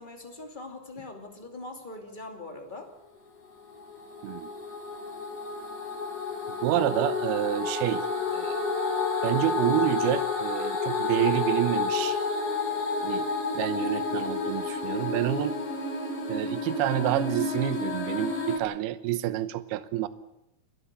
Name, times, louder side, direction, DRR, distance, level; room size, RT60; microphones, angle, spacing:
voice 1, 0.0-2.9, left 2 dB, 15° left, 3 dB, 2.0 m, -42 dB
sound 1, 3.4-18.6, left 4 dB, 50° left, 5.3 m, -30 dB
voice 2, 6.6-8.0 8.3-8.6 9.2-12.2 13.0-13.3 13.5-15.6 16.3-20.1, right 14 dB, 75° right, 13 dB, 2.8 m, -28 dB
29.5 x 12.5 x 8.4 m, 0.85 s
omnidirectional pair, 4.8 m